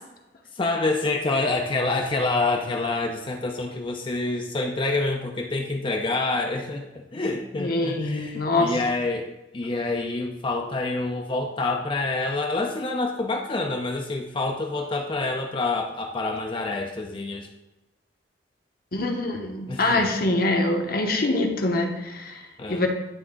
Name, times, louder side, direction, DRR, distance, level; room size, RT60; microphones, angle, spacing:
voice 1, 0.5-17.5 19.7-20.1 22.6-22.9, left 3 dB, 30° left, 2 dB, 0.5 m, -27 dB
voice 2, 7.6-8.7 18.9-22.9, left 2 dB, 55° left, 2 dB, 1.0 m, -24 dB
10.5 x 3.6 x 3.7 m, 1.0 s
head